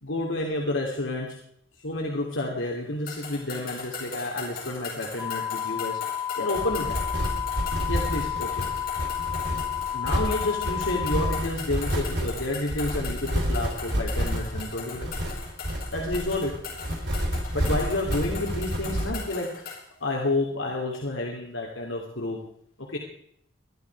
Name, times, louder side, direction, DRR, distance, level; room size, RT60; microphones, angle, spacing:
voice 1, 0.0-1.4 1.8-6.0 6.4-7.0 7.9-8.6 9.9-15.1 15.9-16.6 17.5-19.7 20.0-22.4 22.9-23.0, left 2 dB, 80° left, -1 dB, 2.9 m, -30 dB
sound 1, 3.1-19.9, left 5 dB, 50° left, 5.2 m, -39 dB
sound 2, 5.2-11.4, left 10 dB, 5° right, 2.5 m, -31 dB
sound 3, 6.5-19.1, equal, 60° right, 4.2 m, -29 dB
22.5 x 12.0 x 4.7 m, 0.69 s
head